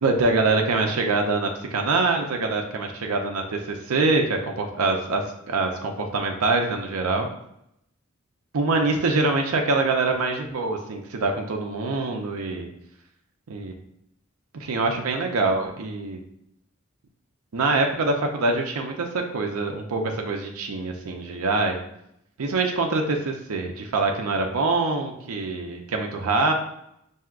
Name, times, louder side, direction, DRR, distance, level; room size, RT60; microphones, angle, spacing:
voice 1, 0.0-7.3 8.5-12.7 13.5-13.7 14.5-16.2 17.5-21.8 22.4-26.5, right 3 dB, 80° right, 3 dB, 0.5 m, -24 dB
5.7 x 2.7 x 2.4 m, 0.77 s
head